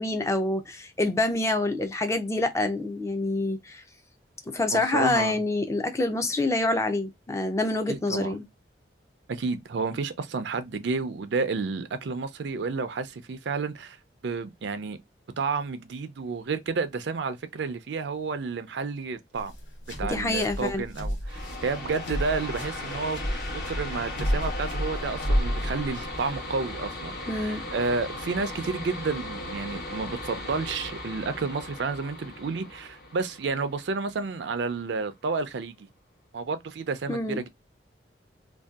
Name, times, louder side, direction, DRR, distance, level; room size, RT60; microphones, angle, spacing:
voice 1, 0.0-3.8 4.5-8.4 20.0-20.8 27.3-27.7 37.1-37.4, left 2 dB, 15° left, 0.4 m, -27 dB
voice 2, 4.7-5.4 7.9-8.4 9.3-14.0 14.2-15.0 15.4-19.5 20.0-23.2 23.5-35.9 36.3-37.5, right 4 dB, 75° right, 0.4 m, -31 dB
sound 1, 19.4-26.3, equal, 80° left, 1.0 m, -31 dB
sound 2, 21.3-34.6, left 2 dB, 55° left, 0.9 m, -37 dB
2.6 x 2.2 x 2.3 m
head